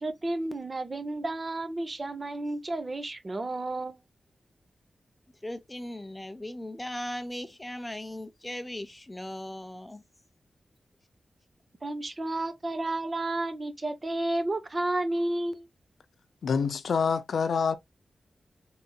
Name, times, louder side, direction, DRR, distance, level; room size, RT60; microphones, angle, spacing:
voice 1, 0.0-4.0 11.8-15.6, right 2 dB, 30° right, 0.7 m, -31 dB
voice 2, 5.4-10.0, left 1 dB, 10° left, 0.6 m, -38 dB
voice 3, 16.4-17.8, left 5 dB, 80° left, 0.5 m, -26 dB
4.1 x 3.6 x 2.2 m
wide cardioid pair, 135°, 0 cm